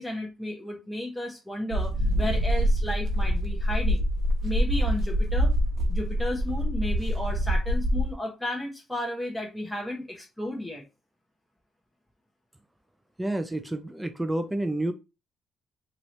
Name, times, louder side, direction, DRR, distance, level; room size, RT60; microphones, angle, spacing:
voice 1, 0.0-4.1 4.4-5.5 5.9-10.8, left 1 dB, 5° left, 0.8 m, -33 dB
sound 1, 1.7-8.1, equal, 55° right, 1.0 m, -25 dB
voice 2, 13.2-14.9, right 1 dB, 10° right, 0.3 m, -29 dB
2.8 x 2.6 x 3.1 m
cardioid pair, 90°, 0 cm